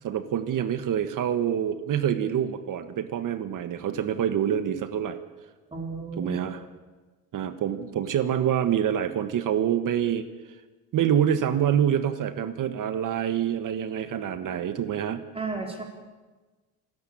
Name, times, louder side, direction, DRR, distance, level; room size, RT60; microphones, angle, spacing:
voice 1, 0.0-5.2 6.2-6.6 7.3-10.3 10.9-15.2, right 9 dB, 55° right, 10 dB, 1.5 m, -26 dB
voice 2, 5.7-6.5 15.3-15.8, right 4 dB, 15° right, 2 dB, 4.0 m, -33 dB
27.0 x 14.0 x 8.7 m, 1.3 s
cardioid pair, 120°, 38 cm